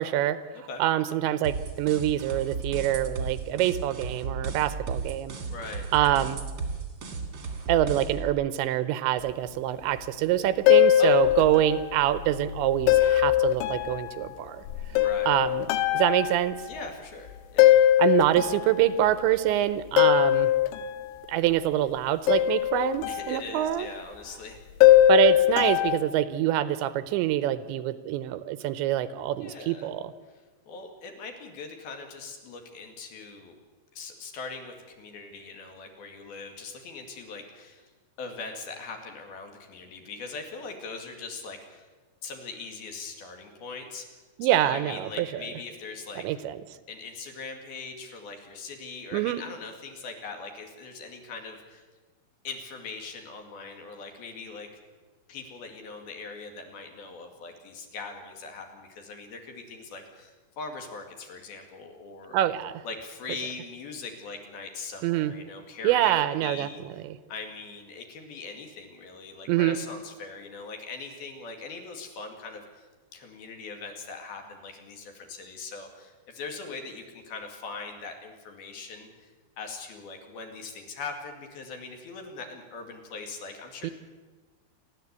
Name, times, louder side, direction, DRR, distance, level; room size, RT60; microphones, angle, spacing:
voice 1, 0.0-0.4 0.8-5.4 5.9-6.4 7.7-14.6 15.3-15.7 15.9-16.6 18.0-20.5 21.3-23.9 25.1-30.1 44.4-45.3 46.2-46.6 49.1-49.4 62.3-62.8 65.0-65.3 65.8-66.7 67.0-67.2 69.5-69.8 83.8-83.9, right 13 dB, 80° right, 14 dB, 3.0 m, -25 dB
sound 1, 1.4-8.3, right 4 dB, 40° right, 1.9 m, -35 dB
voice 2, 5.5-6.2 11.0-11.6 14.9-15.4 16.7-17.8 23.1-24.6 29.3-29.9 30.3-33.6 33.9-37.9 38.2-41.9 42.2-44.1 44.4-46.2 46.9-51.8 52.4-54.7 55.3-62.4 62.8-66.8 67.3-79.3 79.6-83.9, left 4 dB, 60° left, 4 dB, 3.8 m, -41 dB
sound 2, 10.7-11.9 12.1-14.2 14.7-16.7 17.6-18.8 20.0-20.8 22.3-23.3 24.8-26.0, left 13 dB, 85° left, 3.4 m, -21 dB
29.0 x 11.5 x 8.2 m, 1.3 s
omnidirectional pair, 5.3 m